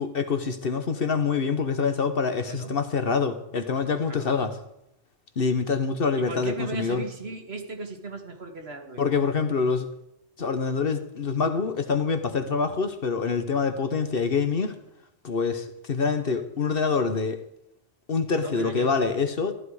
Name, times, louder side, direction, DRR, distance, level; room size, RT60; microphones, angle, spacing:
voice 1, 0.0-4.5 5.4-7.0 9.0-9.9 10.4-14.7 15.2-17.4 18.1-19.5, left 5 dB, 55° left, 9 dB, 1.2 m, -25 dB
voice 2, 2.4-2.7 4.1-4.3 6.2-9.0 18.3-18.9, right 3 dB, 60° right, 4 dB, 2.0 m, -37 dB
14.5 x 12.0 x 4.9 m, 0.83 s
omnidirectional pair, 1.2 m